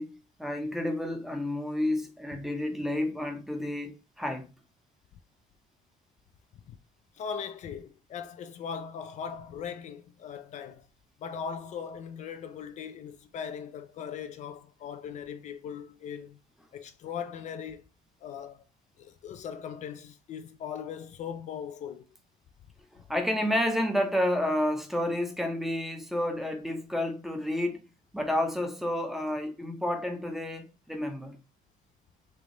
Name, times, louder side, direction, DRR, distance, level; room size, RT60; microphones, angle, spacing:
voice 1, 0.0-4.5 23.1-27.8 28.1-31.4, left 1 dB, ahead, 0.7 m, -30 dB
voice 2, 7.2-10.9 11.2-16.4 16.7-17.8 18.2-18.6 19.0-22.0, left 7 dB, 45° left, 0.4 m, -39 dB
3.3 x 3.0 x 3.7 m
cardioid pair, 145°, 16 cm